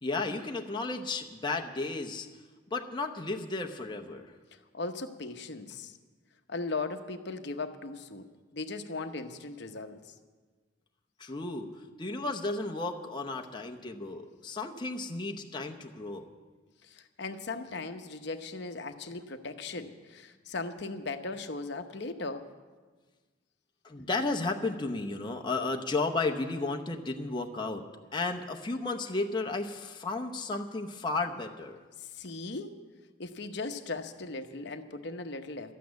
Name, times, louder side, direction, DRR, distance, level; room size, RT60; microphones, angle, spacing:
voice 1, 0.0-2.3 2.7-4.3 11.2-11.7 12.0-16.3 23.8-27.8 28.1-31.8, left 3 dB, 20° left, 3 dB, 0.8 m, -33 dB
voice 2, 4.7-6.0 6.5-8.3 8.5-10.1 16.8-22.5 32.0-32.8 33.2-35.7, left 3 dB, 55° left, 7 dB, 0.9 m, -38 dB
12.5 x 8.4 x 9.4 m, 1.4 s
head